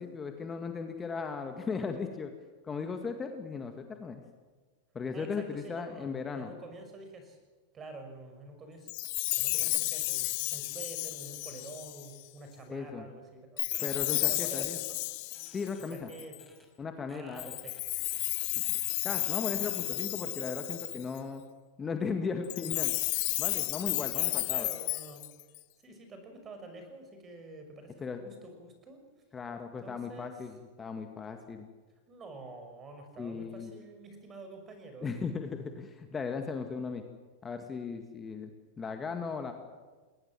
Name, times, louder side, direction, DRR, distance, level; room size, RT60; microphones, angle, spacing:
voice 1, 0.0-2.3 2.6-4.2 4.9-6.5 12.7-13.1 13.8-14.8 15.5-16.1 16.8-17.5 19.0-21.4 21.8-22.9 23.4-24.7 28.0-28.2 29.3-31.7 33.2-33.7 35.0-37.0 37.4-38.5 38.8-39.5, left 5 dB, 20° left, 6 dB, 2.0 m, -37 dB
voice 2, 5.1-6.1 6.3-7.4 7.7-8.9 9.4-13.6 14.1-15.0 15.9-16.5 17.1-17.8 24.1-25.3 25.8-29.0 29.8-30.5 32.1-35.1, right 2 dB, 25° right, 6 dB, 5.8 m, -47 dB
Chime, 8.9-12.2 13.6-16.4 17.4-21.2 22.4-25.6, left 24 dB, 55° left, 0.6 m, -32 dB
sound 1, 13.7-14.8 15.3-16.7 17.1-17.8 18.1-20.1, left 1 dB, ahead, 4.3 m, -61 dB
20.5 x 19.0 x 7.6 m, 1.4 s
hypercardioid pair, 95°, 0 cm